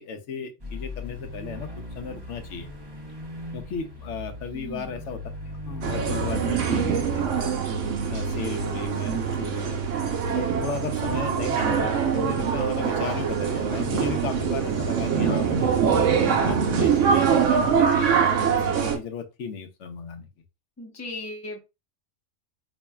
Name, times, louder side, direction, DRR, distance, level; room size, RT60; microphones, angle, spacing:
voice 1, 0.0-1.7 1.9-2.7 3.5-5.2 5.7-7.6 8.1-9.8 10.3-15.7 16.1-18.1 18.6-20.3, left 6 dB, 80° left, 1.0 m, -35 dB
sound 1, 0.6-6.6, left 1 dB, 25° right, 0.7 m, -38 dB
voice 2, 4.5-4.9 8.3-8.5 20.8-21.6, left 2 dB, 15° left, 0.6 m, -37 dB
sound 2, 5.8-19.0, right 7 dB, 85° right, 1.1 m, -24 dB
4.3 x 3.0 x 2.2 m
omnidirectional pair, 1.2 m